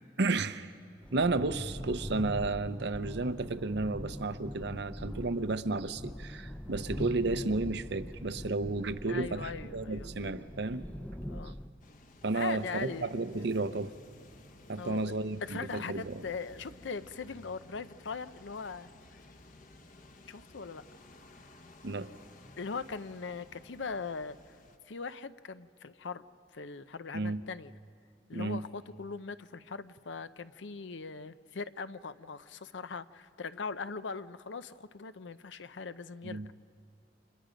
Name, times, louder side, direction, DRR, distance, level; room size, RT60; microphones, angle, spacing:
voice 1, 0.2-0.7 1.1-10.9 12.2-13.9 14.7-16.2 21.8-22.1 27.1-27.4 28.3-28.6 36.2-36.5, right 3 dB, 65° right, 11 dB, 0.7 m, -32 dB
sound 1, 1.0-11.7, equal, 10° left, 0.6 m, -42 dB
voice 2, 9.1-10.1 11.3-11.5 12.3-13.1 14.8-15.1 15.4-19.2 20.3-20.8 22.6-24.6 24.8-26.2 26.5-27.7 28.3-36.4, left 4 dB, 80° left, 13 dB, 0.7 m, -40 dB
sound 2, 11.8-24.8, left 2 dB, 45° left, 1.0 m, -55 dB
30.0 x 26.5 x 5.2 m, 2.6 s
head